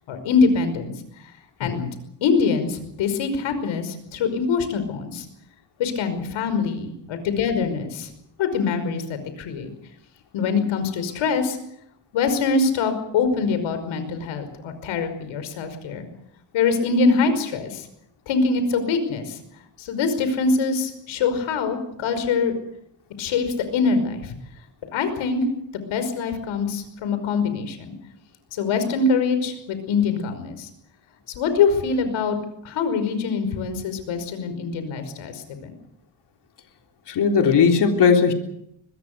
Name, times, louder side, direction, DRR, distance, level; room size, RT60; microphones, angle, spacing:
voice 1, 0.1-0.9 1.6-1.8 2.2-5.3 5.8-8.1 8.4-9.7 10.3-11.6 12.1-16.1 16.5-17.9 18.3-19.4 19.8-22.6 23.2-24.3 24.9-25.4 25.7-27.9 28.5-30.7 31.4-32.4 32.6-35.7, left 4 dB, 80° left, 10 dB, 5.5 m, -24 dB
voice 2, 37.1-38.3, left 6 dB, 60° left, 3 dB, 3.7 m, -18 dB
24.5 x 20.5 x 6.9 m, 0.79 s
cardioid pair, 105°, 46 cm